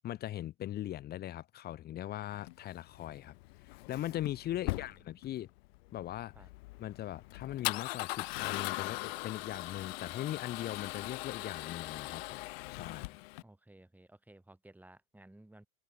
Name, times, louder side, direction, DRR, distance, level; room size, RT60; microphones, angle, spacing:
voice 1, 0.0-3.3 3.6-5.5 5.9-6.3 6.8-12.4 12.7-13.2, left 13 dB, 20° left, 0.9 m, -40 dB
Male speech man speaking / Car / Engine starting, 2.3-13.4, left 22 dB, 45° left, 0.6 m, -40 dB
voice 2, 4.6-5.2 6.3-6.5 13.4-15.7, right 1 dB, 5° right, 5.9 m, -57 dB
hypercardioid pair, 120°, 43 cm